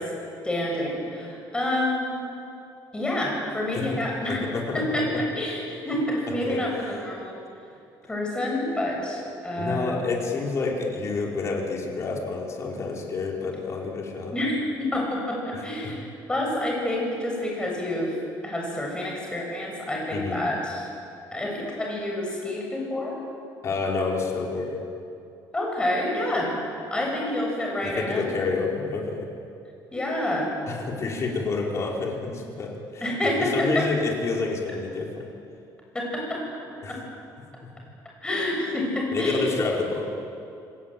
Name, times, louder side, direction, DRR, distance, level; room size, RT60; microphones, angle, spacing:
voice 1, 0.4-2.2 2.9-4.5 4.7-7.4 8.1-9.9 14.3-18.2 18.4-20.9 21.3-23.2 25.5-26.5 26.9-28.3 29.9-30.5 33.0-33.9 35.9-36.4 36.9-37.0 38.2-39.5, left 1 dB, 10° left, -1 dB, 7.8 m, -28 dB
voice 2, 4.3-5.2 6.4-6.6 9.5-14.3 15.5-15.6 20.1-20.4 23.6-24.8 27.8-29.3 30.7-33.1 33.4-35.3 36.8-37.0 39.1-40.1, left 4 dB, 35° left, -1 dB, 4.9 m, -29 dB
28.5 x 20.0 x 9.3 m, 2.6 s
cardioid pair, 160°, 8 cm